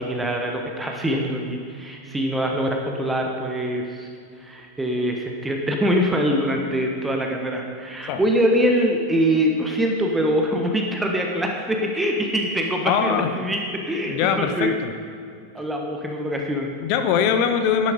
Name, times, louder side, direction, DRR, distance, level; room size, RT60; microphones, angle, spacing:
voice 1, 0.0-4.1 4.4-14.8 15.5-16.7, equal, 10° right, 1 dB, 1.3 m, -24 dB
voice 2, 12.8-13.3 14.1-14.9 16.8-17.9, left 7 dB, 45° left, 7 dB, 1.1 m, -22 dB
11.5 x 11.0 x 5.2 m, 2.4 s
figure-of-eight pair, 90°, 0 cm